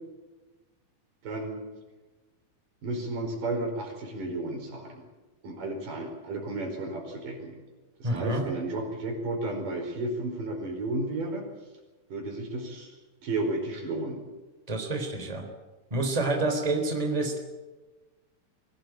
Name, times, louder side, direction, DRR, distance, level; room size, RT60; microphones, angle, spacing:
voice 1, 1.2-1.6 2.8-5.0 5.4-7.5 8.0-11.5 12.1-13.0 13.2-14.2, right 2 dB, 80° right, 2 dB, 6.3 m, -33 dB
voice 2, 8.0-8.5 14.7-15.5 15.9-17.4, right 2 dB, 10° right, 4 dB, 3.5 m, -28 dB
23.5 x 17.5 x 9.0 m, 1.2 s
omnidirectional pair, 3.7 m